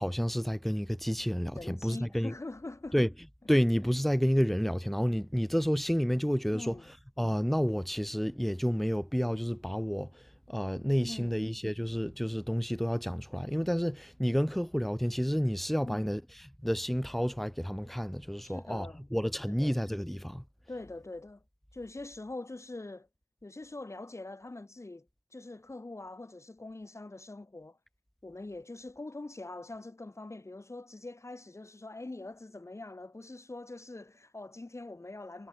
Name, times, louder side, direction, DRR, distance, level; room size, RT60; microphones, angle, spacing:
voice 1, 0.0-2.3 2.9-3.1 3.5-6.8 7.2-16.2 16.6-18.9 19.1-20.4, equal, ahead, 5.6 m, -30 dB
voice 2, 1.5-3.0 6.5-6.9 11.0-11.4 15.8-16.1 18.4-19.1 19.5-19.8 20.7-21.4 21.7-23.1 23.4-25.1 25.3-27.8 28.2-35.5, left 2 dB, 40° left, 5.3 m, -43 dB
wide cardioid pair, 50°, 8 cm